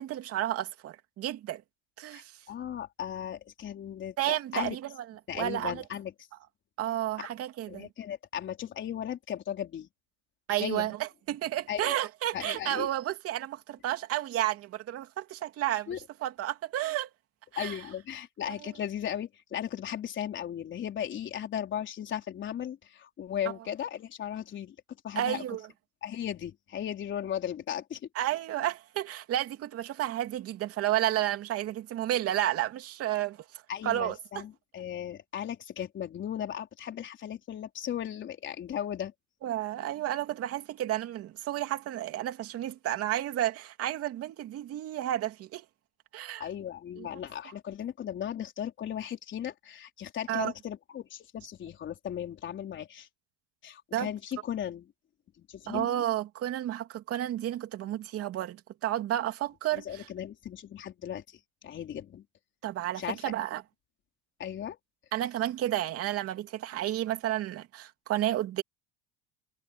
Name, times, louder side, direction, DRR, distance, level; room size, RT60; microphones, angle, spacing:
voice 1, 0.0-1.6 2.0-2.4 4.2-5.8 6.8-7.9 10.5-15.9 16.2-17.1 17.5-17.8 18.5-18.7 25.1-25.6 28.1-34.2 39.4-45.6 46.1-46.5 47.0-47.1 50.3-50.5 53.9-54.1 55.7-60.1 62.6-63.6 65.1-68.6, right 13 dB, 40° right, 2.9 m, -31 dB
voice 2, 2.5-4.8 5.3-6.1 7.2-7.3 7.7-9.9 10.6-10.9 11.7-12.0 12.3-12.9 15.9-16.0 17.6-24.8 25.0-25.4 26.0-28.0 33.7-39.1 46.4-53.1 53.6-54.9 55.4-56.0 59.7-62.2 63.0-63.2 64.4-64.8, left 10 dB, 35° left, 4.1 m, -36 dB
supercardioid pair, 135°, 35 cm